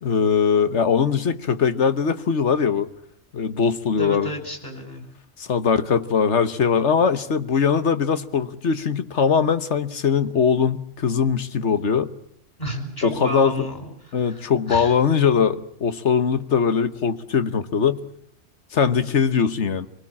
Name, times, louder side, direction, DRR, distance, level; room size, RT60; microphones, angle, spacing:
voice 1, 0.0-2.9 3.3-4.3 5.4-12.1 13.0-13.7 14.1-18.0 18.7-19.9, left 6 dB, 70° left, 12 dB, 1.5 m, -21 dB
voice 2, 4.0-5.0 12.6-14.9, equal, 35° left, 5 dB, 6.2 m, -32 dB
25.5 x 19.5 x 8.6 m, 0.69 s
omnidirectional pair, 1.2 m